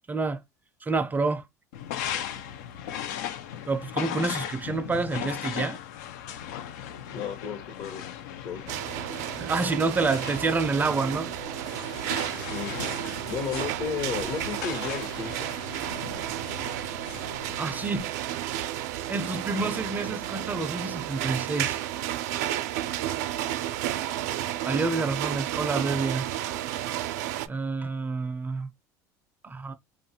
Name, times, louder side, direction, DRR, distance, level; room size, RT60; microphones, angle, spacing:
voice 1, 0.1-0.4 0.8-1.4 3.7-5.8 9.3-11.3 17.6-18.1 19.1-21.8 24.6-26.3 27.5-28.7 29.4-29.7, right 3 dB, 20° right, 0.4 m, -28 dB
sound 1, 1.7-18.0, left 9 dB, 85° left, 0.4 m, -38 dB
voice 2, 7.1-8.6 12.5-12.9 13.3-15.8, left 6 dB, 60° left, 0.9 m, -34 dB
sound 2, 8.7-27.5, right 13 dB, 85° right, 0.4 m, -32 dB
2.7 x 2.3 x 2.7 m
supercardioid pair, 100°, 9 cm